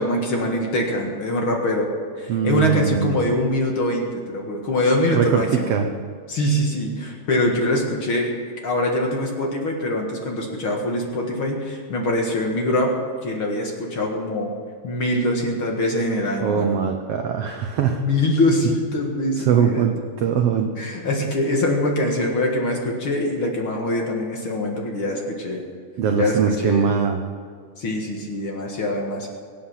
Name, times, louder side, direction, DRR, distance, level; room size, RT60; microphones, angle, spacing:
voice 1, 0.0-1.9 2.2-5.7 6.3-8.3 8.6-12.9 13.2-14.5 14.8-16.8 17.9-19.9 20.8-25.6 26.1-26.9 27.8-29.3, left 1 dB, 45° left, 0 dB, 2.1 m, -23 dB
voice 2, 2.3-3.2 5.1-5.9 16.4-18.0 19.4-20.7 26.0-27.2, right 7 dB, 75° right, 4 dB, 1.4 m, -21 dB
23.0 x 8.9 x 5.7 m, 2.1 s
omnidirectional pair, 3.8 m